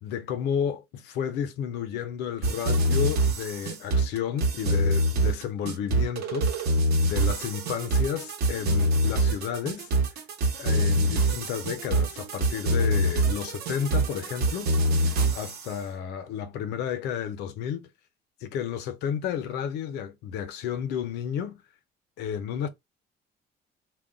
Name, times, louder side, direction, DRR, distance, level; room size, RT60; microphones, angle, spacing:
voice 1, 0.0-6.7 7.0-9.9 10.6-14.8 15.3-17.9 18.4-21.6 22.2-22.7, left 8 dB, 80° left, 0.6 m, -32 dB
sound 1, 2.4-15.7, right 1 dB, 65° right, 0.8 m, -25 dB
2.2 x 2.2 x 3.7 m
cardioid pair, 175°, 17 cm